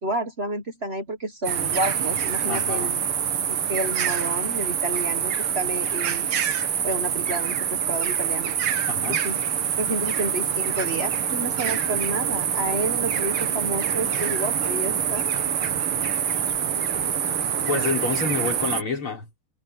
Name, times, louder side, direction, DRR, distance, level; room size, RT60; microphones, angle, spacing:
voice 1, 0.0-3.0 3.5-6.3 6.8-8.5 9.1-9.4 9.8-15.2, right 1 dB, 35° right, 1.3 m, -30 dB
sound 1, 1.4-18.8, right 8 dB, 85° right, 2.3 m, -25 dB
voice 2, 2.5-3.0 8.9-9.3 17.7-19.5, left 4 dB, 90° left, 5.8 m, -28 dB
omnidirectional pair, 2.3 m